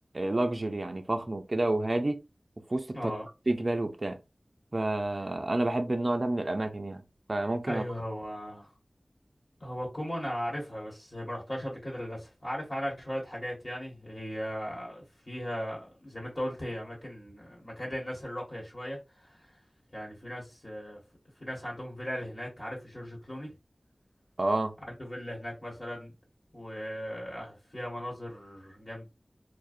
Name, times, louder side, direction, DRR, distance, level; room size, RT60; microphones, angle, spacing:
voice 1, 0.1-2.2 2.7-3.1 3.5-4.2 4.7-7.0 7.3-7.8 24.4-24.7, right 2 dB, 55° right, 0.4 m, -29 dB
voice 2, 2.9-3.3 7.7-8.7 9.6-19.5 19.9-21.0 21.4-23.5 24.9-26.1 26.5-29.1, equal, 40° left, 1.1 m, -37 dB
2.5 x 2.0 x 2.4 m
wide cardioid pair, 40°, 0 cm